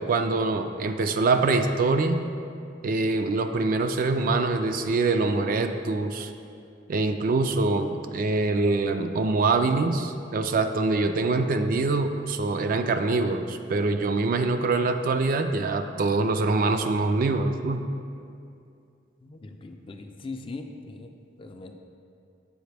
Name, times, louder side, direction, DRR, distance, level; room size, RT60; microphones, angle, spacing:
voice 1, 0.0-2.2 2.8-6.3 6.9-17.8, right 3 dB, 50° right, 7 dB, 0.3 m, -24 dB
voice 2, 19.2-21.1 21.4-21.8, left 3 dB, 30° left, 5 dB, 0.3 m, -40 dB
7.8 x 4.8 x 3.3 m, 2.4 s
head